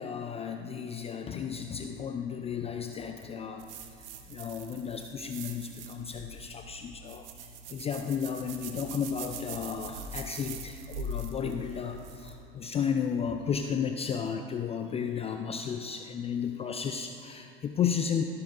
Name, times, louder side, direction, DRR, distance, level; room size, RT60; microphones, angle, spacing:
voice 1, 0.0-18.2, left 7 dB, 20° left, 6 dB, 0.4 m, -33 dB
sound 1, 3.6-12.3, right 2 dB, 65° right, 1.1 m, -42 dB
14.0 x 12.5 x 2.6 m, 2.6 s
hypercardioid pair, 90°, 31 cm